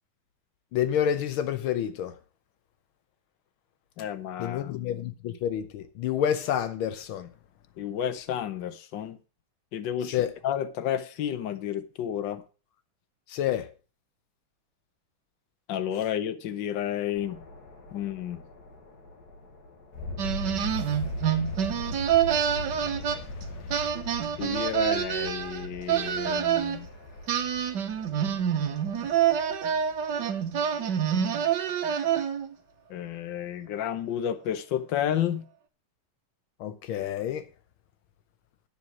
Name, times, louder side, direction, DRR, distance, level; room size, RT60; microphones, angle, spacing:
voice 1, 0.7-2.1 4.4-7.3 10.1-10.3 13.3-13.7 36.6-37.4, left 10 dB, 85° left, 1.6 m, -28 dB
voice 2, 4.0-4.7 7.8-9.2 9.7-12.4 15.7-17.4 17.9-18.4 24.4-26.9 32.9-35.4, left 10 dB, 65° left, 1.6 m, -31 dB
sound 1, 17.1-31.1, left 1 dB, 50° left, 2.3 m, -40 dB
sound 2, 20.2-23.4 23.7-26.8 27.3-32.5, right 9 dB, 60° right, 1.5 m, -27 dB
10.5 x 7.5 x 6.1 m
omnidirectional pair, 2.3 m